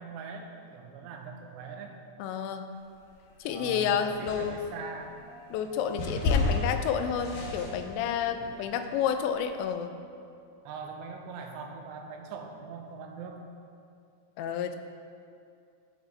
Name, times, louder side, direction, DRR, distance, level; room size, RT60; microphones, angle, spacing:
voice 1, 0.0-2.0 3.4-5.2 8.4-8.8 10.6-13.4, right 5 dB, 80° right, 3 dB, 2.9 m, -42 dB
voice 2, 2.2-2.7 3.4-4.6 5.5-9.9 14.4-14.8, left 8 dB, 90° left, 8 dB, 2.9 m, -30 dB
sound 1, 2.9-3.7 4.2-9.6, left 4 dB, 65° left, 2.8 m, -33 dB
sound 2, 4.9-10.1, right 2 dB, 55° right, 2.0 m, -47 dB
14.0 x 6.7 x 3.3 m, 2.4 s
omnidirectional pair, 5.1 m